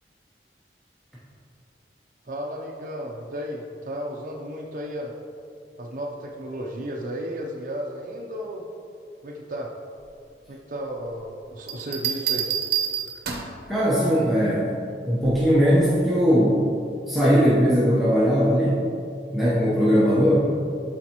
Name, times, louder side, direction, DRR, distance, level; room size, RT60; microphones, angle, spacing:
voice 1, 2.3-5.1 5.8-8.6 9.2-9.7 10.5-12.5, equal, 50° right, -2 dB, 0.5 m, -33 dB
sound 1, 11.7-13.6 15.2-15.6, right 8 dB, 70° right, 0.9 m, -27 dB
voice 2, 13.7-14.8 15.0-16.6 17.1-18.8 19.3-20.5, equal, ahead, -10 dB, 0.9 m, -19 dB
11.5 x 4.0 x 2.9 m, 2.5 s
head